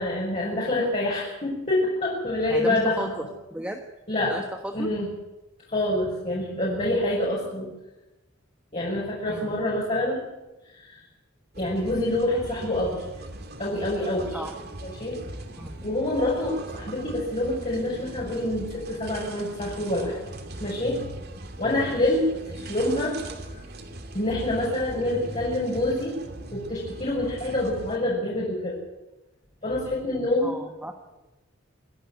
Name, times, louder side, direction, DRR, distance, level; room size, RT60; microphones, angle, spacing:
voice 1, 0.0-3.3 4.1-4.4 4.7-5.1 5.7-7.7 8.7-10.3 10.9-11.0 11.6-13.0 13.6-14.4 14.8-15.2 15.8-20.2 20.6-21.1 21.6-23.2 24.1-26.2 26.5-28.8 29.6-30.6, left 1 dB, 35° left, -6 dB, 6.7 m, -26 dB
voice 2, 2.5-3.1 3.5-3.8 4.3-4.9 9.3-9.6 14.3-14.5 15.6-15.7 21.9-22.1 30.4-30.9, right 1 dB, 5° right, 4 dB, 1.3 m, -35 dB
sound 1, 11.5-28.0, right 1 dB, 50° right, 2.6 m, -40 dB
26.5 x 11.0 x 9.6 m, 1.0 s
head